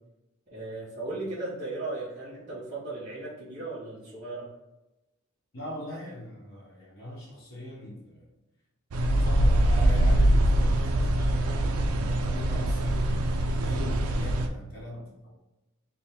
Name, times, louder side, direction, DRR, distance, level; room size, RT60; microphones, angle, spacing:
voice 1, 0.5-4.5, right 2 dB, 30° right, -10 dB, 0.9 m, -36 dB
voice 2, 5.5-8.3 8.9-15.3, left 1 dB, 60° left, -5 dB, 1.0 m, -40 dB
sound 1, 8.9-14.5, right 1 dB, 75° right, 0.4 m, -23 dB
3.5 x 2.1 x 4.3 m, 0.98 s
head